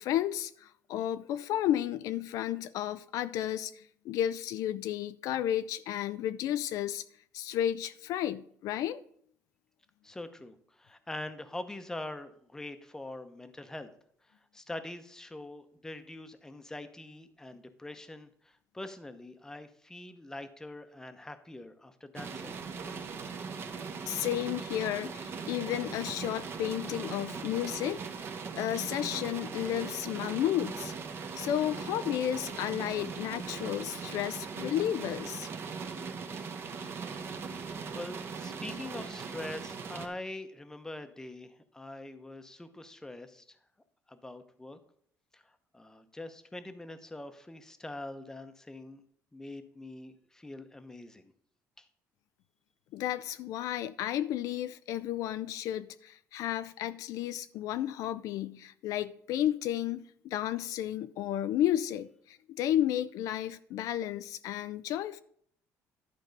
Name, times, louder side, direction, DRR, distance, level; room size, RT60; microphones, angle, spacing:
voice 1, 0.0-7.0 7.3-9.0 24.1-28.3 28.6-30.9 31.4-35.5 52.9-65.2, left 11 dB, 70° left, 0.4 m, -32 dB
voice 2, 10.0-13.9 14.5-22.6 36.6-36.9 37.9-43.4 44.1-44.8 45.3-45.4 45.7-49.0 49.3-51.2 51.8-51.9, left 2 dB, 10° left, 0.8 m, -44 dB
sound 1, 22.1-40.1, right 5 dB, 40° right, 1.1 m, -39 dB
11.5 x 4.5 x 5.2 m
cardioid pair, 125°, 6 cm